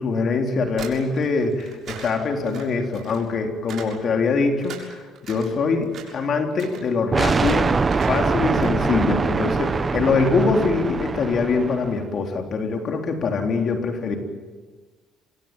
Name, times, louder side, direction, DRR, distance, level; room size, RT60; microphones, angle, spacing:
voice 1, 0.0-14.2, left 4 dB, 50° left, 3 dB, 3.7 m, -23 dB
sound 1, 0.7-3.3 3.7-4.0 4.3-5.5 5.8-6.2 6.5-6.8 7.3-7.6 7.8-8.2 8.5-8.7, right 7 dB, 55° right, 7.0 m, -40 dB
sound 2, 7.1-12.0, right 4 dB, 30° right, 1.2 m, -23 dB
25.5 x 22.0 x 9.2 m, 1.4 s
supercardioid pair, 85°, 0 cm